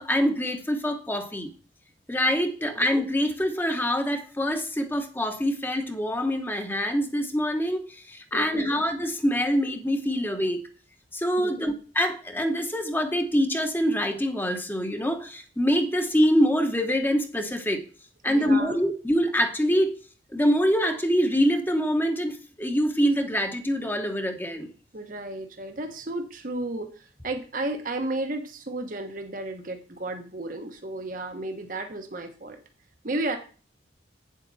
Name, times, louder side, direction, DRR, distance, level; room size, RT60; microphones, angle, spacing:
voice 1, 0.0-1.5 2.1-10.6 11.1-17.8 18.2-19.9 20.3-24.7, equal, 10° left, 6 dB, 1.1 m, -25 dB
voice 2, 8.3-8.8 11.4-11.7 18.3-18.8 24.9-32.6 33.0-33.4, right 2 dB, 45° right, 5 dB, 1.1 m, -33 dB
9.0 x 7.5 x 4.1 m, 0.39 s
head